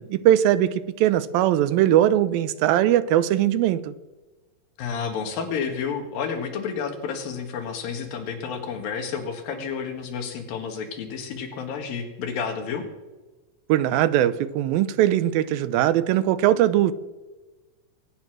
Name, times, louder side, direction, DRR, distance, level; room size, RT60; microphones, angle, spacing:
voice 1, 0.0-4.0 13.7-16.9, right 12 dB, 85° right, 2.5 m, -20 dB
voice 2, 4.8-12.8, left 6 dB, 75° left, 3.5 m, -30 dB
22.5 x 9.6 x 6.1 m
omnidirectional pair, 4.2 m